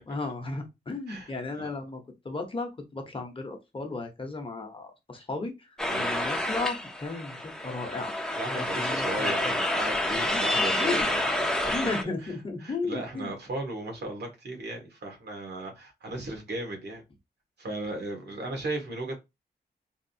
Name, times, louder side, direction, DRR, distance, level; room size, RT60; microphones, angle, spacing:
voice 1, 0.1-2.0 2.2-8.2 8.5-9.6 10.3-11.1 11.7-13.3, left 3 dB, 30° left, 0.8 m, -35 dB
voice 2, 1.1-1.7 5.9-6.2 8.4-11.2 11.6-11.7 12.0-12.3 12.6-17.0 17.6-19.2, right 2 dB, 75° right, 1.3 m, -36 dB
sound 1, 5.8-12.0, left 1 dB, 5° left, 0.6 m, -28 dB
3.5 x 2.6 x 2.6 m
wide cardioid pair, 115°, 17 cm